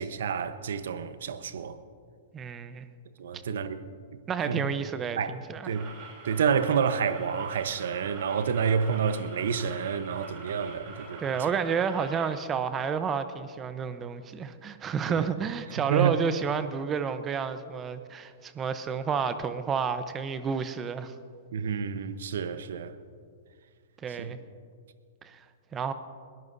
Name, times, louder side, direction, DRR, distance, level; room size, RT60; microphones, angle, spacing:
voice 1, 0.0-1.8 3.2-3.8 4.5-4.6 5.2-5.3 5.6-5.9 6.2-11.4 15.1-15.2 15.9-16.2 21.5-22.9 24.2-24.3, right 7 dB, 70° right, 0.9 m, -29 dB
voice 2, 2.3-2.9 4.3-5.8 11.2-21.1 24.0-24.4 25.2-25.4 25.7-25.9, right 6 dB, 25° right, 0.8 m, -30 dB
sound 1, 5.7-12.3, right 4 dB, 45° right, 3.9 m, -45 dB
21.5 x 17.0 x 2.7 m
hypercardioid pair, 115°, 0 cm